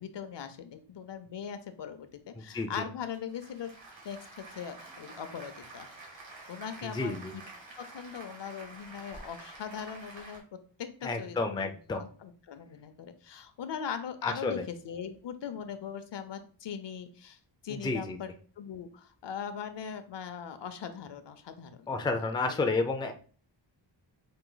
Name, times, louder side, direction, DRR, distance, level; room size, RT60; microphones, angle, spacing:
voice 1, 0.0-3.7 4.0-5.9 6.5-7.4 7.8-10.4 10.8-17.4 17.6-18.3 18.6-21.9 22.5-22.6, left 7 dB, 65° left, 9 dB, 0.7 m, -40 dB
voice 2, 2.4-2.8 6.8-7.3 11.0-12.0 14.2-14.6 17.7-18.2 21.9-23.1, left 3 dB, 10° left, 5 dB, 0.3 m, -31 dB
Applause, 3.0-10.4, right 2 dB, 75° right, 1.6 m, -49 dB
4.9 x 2.6 x 3.9 m, 0.41 s
wide cardioid pair, 165°, 45 cm